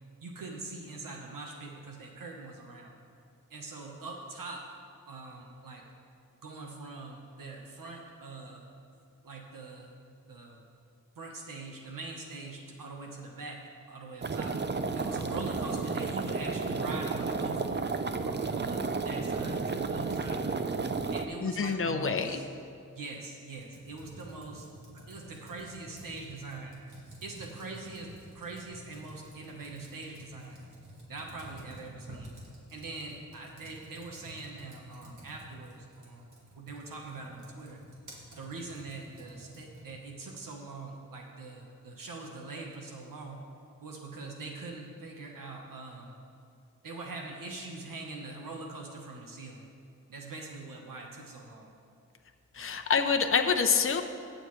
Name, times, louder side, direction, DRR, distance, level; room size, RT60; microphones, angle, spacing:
voice 1, 0.2-3.0 3.5-4.7 5.1-5.9 6.4-8.6 9.2-9.9 10.3-10.6 11.2-14.6 14.9-17.8 18.2-20.5 21.1-22.5 22.9-24.7 25.1-26.8 27.2-30.6 31.1-32.3 32.7-36.3 36.6-37.8 38.4-43.4 43.8-46.2 46.8-49.7 50.1-51.7 52.6-52.7, right 3 dB, 80° right, 0 dB, 1.3 m, -43 dB
sound 1, 14.2-21.3, right 4 dB, 35° right, 0.6 m, -32 dB
voice 2, 21.4-22.4 52.5-54.0, left 5 dB, 40° left, 6 dB, 0.8 m, -27 dB
Computer keyboard, 23.6-40.0, right 1 dB, 65° right, 2.7 m, -51 dB
17.5 x 6.5 x 3.2 m, 2.5 s
cardioid pair, 55°, 33 cm